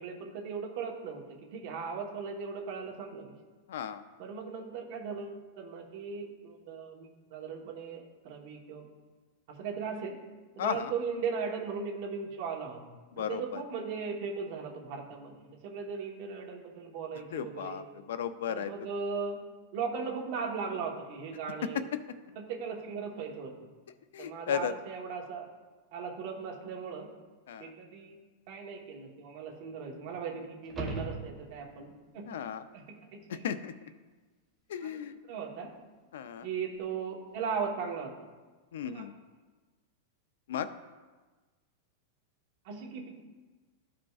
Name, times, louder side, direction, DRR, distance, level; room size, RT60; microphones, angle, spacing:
voice 1, 0.0-3.3 4.2-8.9 9.5-10.2 10.5-12.8 13.2-17.8 18.5-19.4 19.7-21.9 22.3-23.6 24.2-25.5 25.9-27.1 27.6-28.1 28.5-32.3 32.7-33.4 34.8-35.7 36.4-38.2 38.9-39.1 42.6-43.2, right 5 dB, 40° right, 0 dB, 1.1 m, -38 dB
voice 2, 3.7-4.0 10.6-10.9 13.2-13.6 17.3-18.7 24.1-24.7 27.5-27.7 32.3-32.6 33.3-33.7 34.7-35.1 36.1-36.5 38.7-39.1 40.5-40.7, left 8 dB, 70° left, 13 dB, 0.4 m, -35 dB
sound 1, 30.6-31.9 36.8-36.9, right 2 dB, 10° right, 0.7 m, -38 dB
13.5 x 5.0 x 2.4 m, 1.3 s
supercardioid pair, 180°, 0 cm